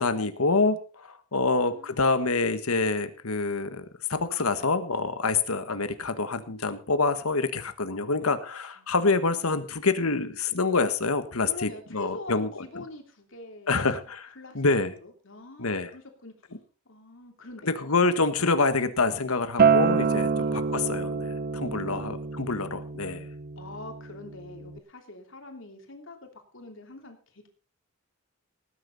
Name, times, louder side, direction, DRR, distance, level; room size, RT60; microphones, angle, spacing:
voice 1, 0.0-12.8 13.7-14.9 15.6-15.9 17.6-23.3, left 3 dB, 85° left, 11 dB, 1.5 m, -26 dB
voice 2, 1.3-2.3 8.8-9.8 11.4-14.0 14.3-16.3 16.8-17.9 20.3-20.5 21.9-22.0 23.6-27.5, left 2 dB, 60° left, 4 dB, 3.2 m, -45 dB
Acoustic guitar, 19.6-24.8, right 5 dB, 45° right, 0.6 m, -26 dB
19.0 x 9.9 x 4.1 m, 0.37 s
head